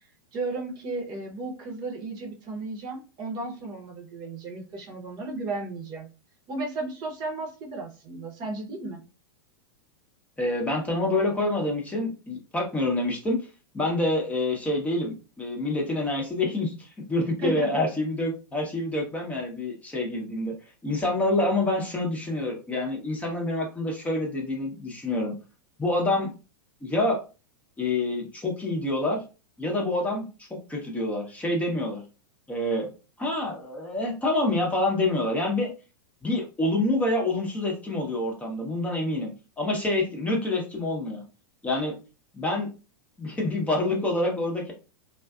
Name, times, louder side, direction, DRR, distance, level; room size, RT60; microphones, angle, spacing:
voice 1, 0.3-6.1 6.5-9.0 17.4-17.8, right 2 dB, 40° right, 0 dB, 0.8 m, -34 dB
voice 2, 10.4-13.5 13.7-20.5 20.8-25.3 25.8-26.3 26.8-27.2 27.8-29.2 29.6-32.0 32.5-32.9 33.2-35.7 36.2-41.2 41.6-41.9 42.3-42.7 43.2-44.7, left 2 dB, 10° left, 0 dB, 0.8 m, -27 dB
2.5 x 2.2 x 2.3 m, 0.32 s
hypercardioid pair, 100°, 12 cm